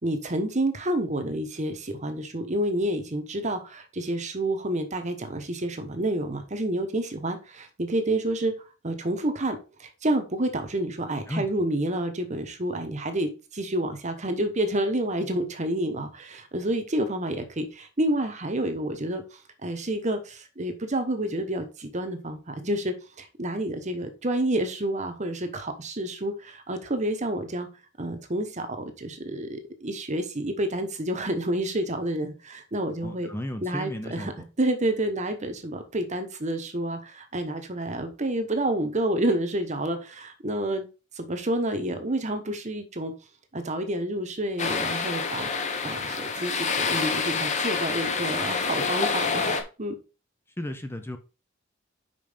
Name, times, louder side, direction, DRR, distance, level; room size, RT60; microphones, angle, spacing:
voice 1, 0.0-8.5 8.8-27.7 28.0-33.3 33.6-34.3 34.6-40.9 41.2-43.1 43.5-45.5 45.8-50.0, right 1 dB, 35° right, 1.2 m, -29 dB
voice 2, 33.0-34.4 50.6-51.2, left 1 dB, 10° left, 0.6 m, -34 dB
sound 1, 44.6-49.6, left 5 dB, 35° left, 1.0 m, -27 dB
5.4 x 5.2 x 5.1 m
head